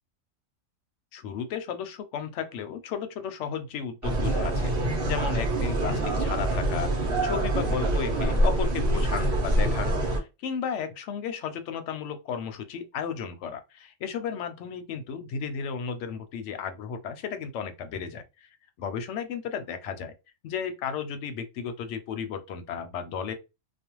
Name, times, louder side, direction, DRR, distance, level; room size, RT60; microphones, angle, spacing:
voice 1, 1.1-18.5 18.8-20.2 20.4-23.3, left 7 dB, 70° left, 0.8 m, -34 dB
sound 1, 4.0-10.2, right 1 dB, 50° right, 1.0 m, -25 dB
2.4 x 2.2 x 2.9 m
omnidirectional pair, 1.3 m